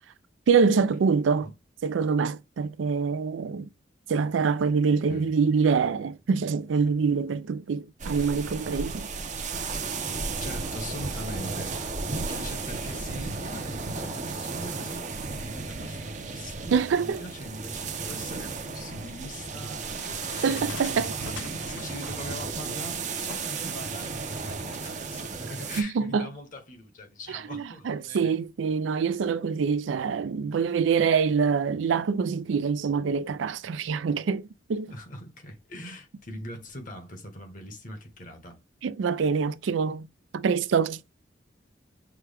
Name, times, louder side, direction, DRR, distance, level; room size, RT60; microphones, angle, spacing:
voice 1, 0.5-1.5 1.8-3.7 4.1-9.1 16.7-17.2 20.4-21.1 25.8-26.3 27.5-34.9 38.8-40.1 40.3-41.0, right 5 dB, 90° right, 0.4 m, -25 dB
sound 1, 8.0-25.8, right 4 dB, 40° right, 0.7 m, -34 dB
voice 2, 10.4-28.3 34.9-38.6, left 1 dB, 45° left, 1.2 m, -42 dB
sound 2, 20.0-24.9, left 6 dB, 75° left, 0.4 m, -44 dB
6.0 x 2.1 x 3.4 m
head